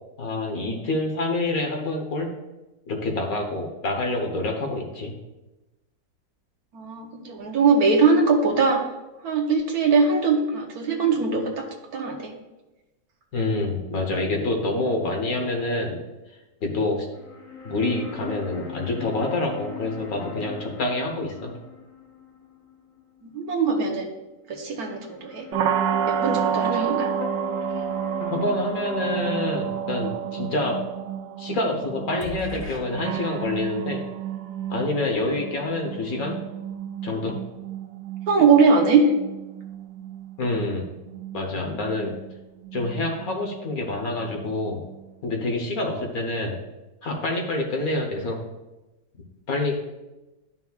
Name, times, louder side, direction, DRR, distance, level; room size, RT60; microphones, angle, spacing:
voice 1, 0.2-2.3 2.9-5.1 13.3-16.0 16.6-17.1 17.6-21.5 26.7-26.9 28.3-30.8 31.4-34.0 34.7-36.4 37.0-37.4 40.4-40.8 41.3-42.1 42.7-44.8 45.2-46.5 47.0-48.4 49.5-50.0, left 2 dB, 55° left, 2 dB, 1.4 m, -27 dB
voice 2, 6.7-8.8 9.2-11.6 11.9-12.3 23.2-24.1 24.5-25.5 26.1-27.1 38.3-39.1, right 4 dB, 60° right, 2 dB, 1.4 m, -21 dB
sound 1, 17.1-23.4 23.7-23.8 24.9-31.8 32.2-32.8, left 5 dB, 35° left, 0.9 m, -40 dB
sound 2, 25.5-45.3, right 9 dB, 85° right, 1.3 m, -31 dB
11.0 x 5.8 x 2.4 m, 1.0 s
omnidirectional pair, 2.0 m